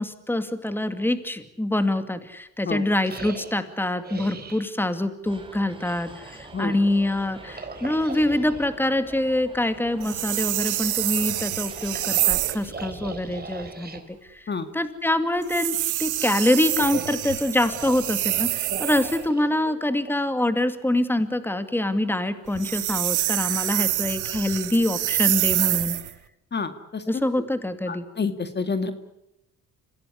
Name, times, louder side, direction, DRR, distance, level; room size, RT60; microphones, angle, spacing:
voice 1, 0.0-26.0 27.1-28.0, left 1 dB, 5° left, 9 dB, 2.4 m, -25 dB
sound 1, 3.0-4.7 7.4-8.8 11.4-14.0 16.3-20.2, right 4 dB, 30° right, 4.2 m, -39 dB
sound 2, 5.2-12.3, right 2 dB, 15° right, 5.9 m, -45 dB
sound 3, 10.0-12.7 15.4-19.3 22.5-26.1, right 14 dB, 80° right, 1.4 m, -26 dB
voice 2, 26.5-27.4 27.9-28.9, left 4 dB, 35° left, 9 dB, 2.1 m, -29 dB
26.5 x 17.5 x 9.8 m, 0.87 s
cardioid pair, 90°, 30 cm